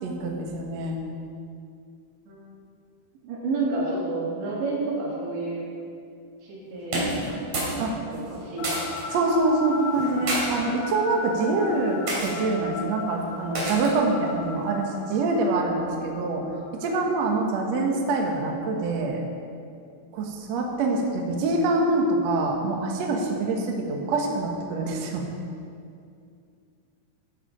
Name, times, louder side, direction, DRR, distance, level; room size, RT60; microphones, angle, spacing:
voice 1, 0.0-1.0 7.8-7.9 9.1-16.4 16.8-19.2 20.1-25.2, right 2 dB, 65° right, 0 dB, 1.7 m, -25 dB
voice 2, 3.2-5.7 6.4-8.7, right 3 dB, 90° right, -5 dB, 5.0 m, -30 dB
sound 1, 6.8-7.8 8.1-9.0 9.9-10.4 11.2-11.5 12.1-12.3 13.5-14.0, right 1 dB, 40° right, 3.6 m, -29 dB
sound 2, 8.6-18.0, left 5 dB, 80° left, 2.2 m, -37 dB
14.5 x 8.4 x 5.1 m, 2.4 s
omnidirectional pair, 4.9 m